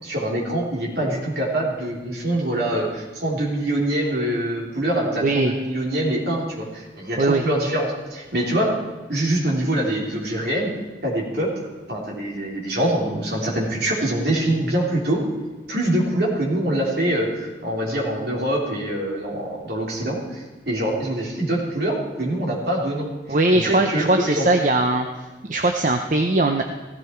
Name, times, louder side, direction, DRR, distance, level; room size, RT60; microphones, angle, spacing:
voice 1, 0.0-8.7 9.1-10.7 11.0-11.5 11.9-15.2 15.7-23.1 23.5-24.5, right 1 dB, 65° right, -3 dB, 3.4 m, -24 dB
voice 2, 5.2-5.5 7.2-7.4 23.3-25.1 25.5-26.6, right 2 dB, 45° right, 5 dB, 0.7 m, -20 dB
16.0 x 14.5 x 4.5 m, 1.2 s
head